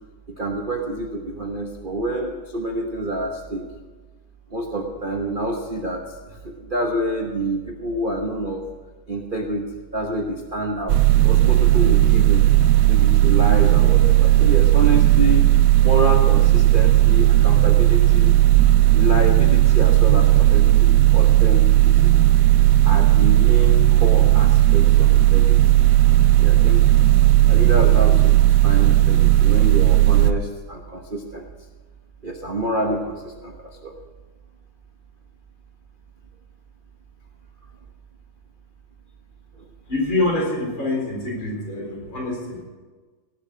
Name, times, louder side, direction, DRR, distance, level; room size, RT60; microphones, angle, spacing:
voice 1, 0.4-3.6 4.5-8.7 9.1-12.4 12.9-15.5 15.8-18.3 18.9-22.1 22.8-25.6 26.4-26.8 27.5-31.5 32.2-34.0, right 1 dB, 40° right, 1 dB, 0.8 m, -27 dB
sound 1, 10.9-30.3, right 14 dB, 70° right, 1.0 m, -15 dB
voice 2, 39.9-42.6, left 2 dB, 65° left, -2 dB, 4.9 m, -25 dB
18.0 x 7.1 x 6.3 m, 1.4 s
omnidirectional pair, 2.4 m